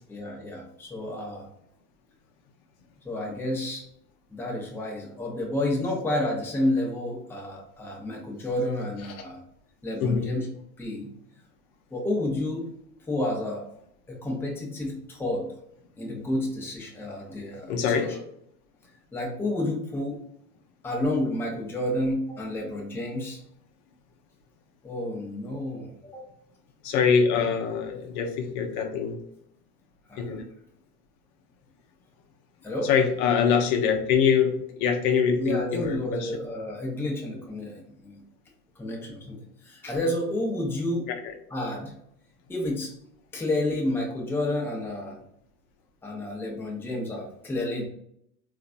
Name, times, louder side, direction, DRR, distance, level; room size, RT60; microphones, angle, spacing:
voice 1, 0.1-1.5 3.0-3.8 4.3-9.4 9.8-10.5 10.8-11.1 11.9-12.7 13.1-13.6 14.1-15.5 16.0-18.2 18.8-20.2 20.8-23.4 24.8-26.2 30.1-30.4 32.6-32.9 35.4-38.2 38.8-41.1 41.5-41.9 42.5-42.9 43.3-45.2 46.0-47.9, left 1 dB, 5° left, -1 dB, 0.6 m, -30 dB
voice 2, 17.7-18.1 26.8-29.2 30.2-30.4 32.8-36.3, left 6 dB, 55° left, 4 dB, 0.7 m, -24 dB
3.8 x 2.5 x 2.5 m, 0.71 s
hypercardioid pair, 85°, 50 cm